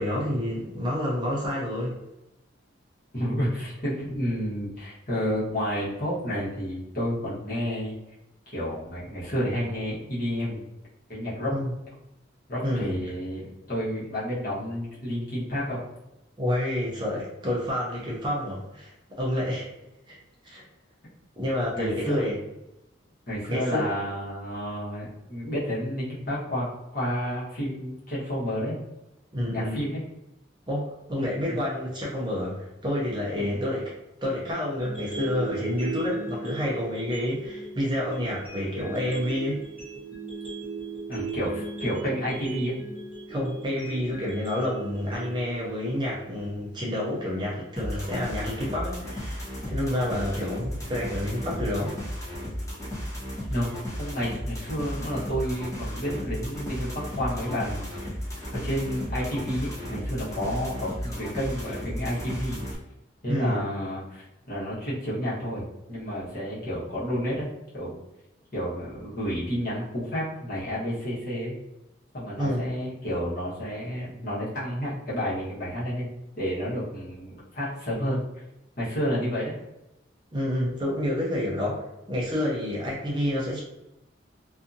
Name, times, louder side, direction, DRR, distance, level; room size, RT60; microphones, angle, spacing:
voice 1, 0.0-2.0 11.5-11.7 12.6-13.0 16.4-19.7 20.1-20.2 20.4-20.6 21.4-22.4 23.5-23.9 29.3-29.8 30.7-33.9 34.2-39.7 43.3-52.0 63.3-63.6 72.4-72.7 80.3-81.8 82.1-83.6, left 1 dB, 25° right, -4 dB, 0.5 m, -29 dB
voice 2, 3.1-7.9 8.5-10.6 11.1-11.5 12.5-15.8 21.7-22.3 23.3-26.7 26.9-28.8 29.5-30.0 31.5-31.6 33.4-33.6 41.1-42.7 53.5-53.7 54.0-58.2 58.5-62.6 63.2-65.6 65.9-68.0 68.5-71.6 72.1-78.2 78.8-79.5, equal, 45° left, -9 dB, 1.1 m, -30 dB
sound 1, 34.8-46.8, right 4 dB, 10° right, 1.1 m, -38 dB
sound 2, 47.8-62.8, equal, 15° left, 0.7 m, -34 dB
2.7 x 2.4 x 2.6 m, 0.92 s
head